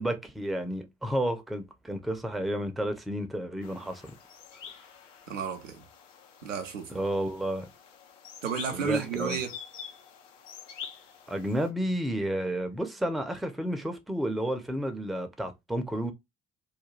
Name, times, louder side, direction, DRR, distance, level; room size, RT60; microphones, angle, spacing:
voice 1, 0.0-4.1 6.9-7.7 8.7-9.4 11.3-16.1, right 1 dB, ahead, 0.4 m, -31 dB
sound 1, 3.6-11.7, left 8 dB, 80° left, 0.6 m, -47 dB
voice 2, 5.3-5.8 6.4-6.9 8.4-9.6, right 7 dB, 90° right, 0.5 m, -32 dB
2.4 x 2.2 x 3.0 m
figure-of-eight pair, 45°, 37 cm